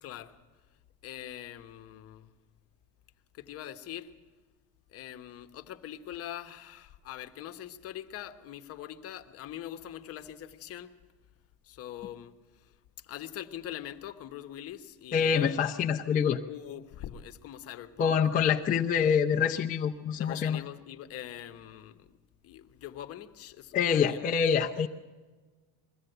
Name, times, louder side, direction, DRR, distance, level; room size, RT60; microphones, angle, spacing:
voice 1, 0.0-0.3 1.0-2.3 3.4-4.1 4.9-10.9 11.7-12.3 13.1-15.6 16.5-18.2 20.2-22.1 22.4-24.2 24.8-24.9, left 11 dB, 45° left, 8 dB, 1.1 m, -43 dB
voice 2, 15.1-16.4 18.0-20.6 23.7-24.9, left 7 dB, 25° left, 1 dB, 0.6 m, -26 dB
22.0 x 15.0 x 8.0 m, 1.4 s
cardioid pair, 150°, 33 cm